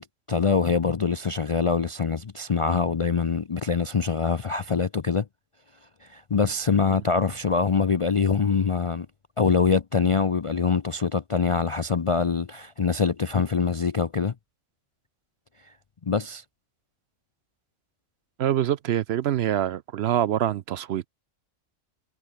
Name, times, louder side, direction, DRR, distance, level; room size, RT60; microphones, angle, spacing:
voice 1, 0.0-5.3 6.0-9.1 9.4-14.3 16.0-16.4, left 5 dB, 45° left, 0.4 m, -24 dB
voice 2, 18.4-21.1, right 11 dB, 65° right, 0.8 m, -25 dB
omnidirectional pair, 1.3 m